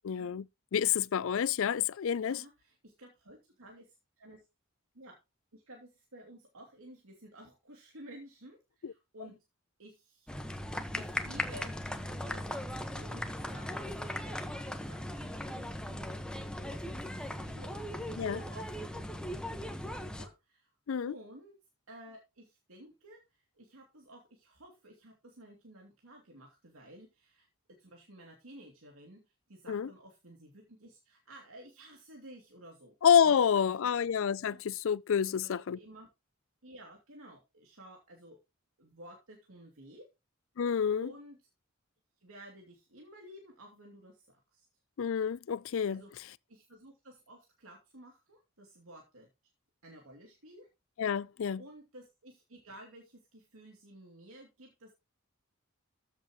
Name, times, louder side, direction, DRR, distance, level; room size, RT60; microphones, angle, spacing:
voice 1, 0.0-0.5 0.7-2.4 8.8-8.9 18.2-18.4 20.9-21.1 29.7-29.9 33.0-35.8 40.6-41.1 45.0-46.0 51.0-51.6, left 8 dB, 70° left, 0.4 m, -28 dB
voice 2, 2.3-4.4 4.9-5.2 5.5-9.4 9.8-10.3 10.9-16.2 16.7-20.7 21.0-21.6 21.9-32.9 33.2-34.6 35.2-36.1 36.6-38.4 38.8-40.1 41.0-41.4 42.2-44.7 45.9-46.1 46.5-49.3 49.8-50.7 51.6-54.9, right 1 dB, 85° right, 2.7 m, -53 dB
sound 1, 10.3-20.3, left 1 dB, 5° left, 1.3 m, -38 dB
14.0 x 7.6 x 3.1 m
head